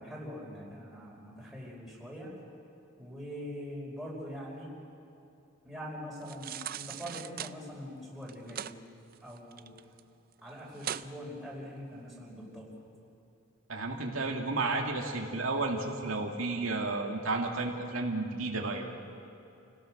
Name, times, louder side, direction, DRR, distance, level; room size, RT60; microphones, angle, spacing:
voice 1, 0.0-2.3 3.0-4.7 5.6-8.7 9.2-9.7 10.4-12.7, equal, ahead, -5 dB, 5.0 m, -43 dB
sound 1, 6.2-7.5 8.2-8.7 9.1-10.0 10.3-10.4 10.8-11.1 11.6-11.7, right 10 dB, 45° right, 0.4 m, -39 dB
voice 2, 13.7-18.9, right 3 dB, 80° right, 0 dB, 2.1 m, -32 dB
29.5 x 17.0 x 6.5 m, 2.7 s
head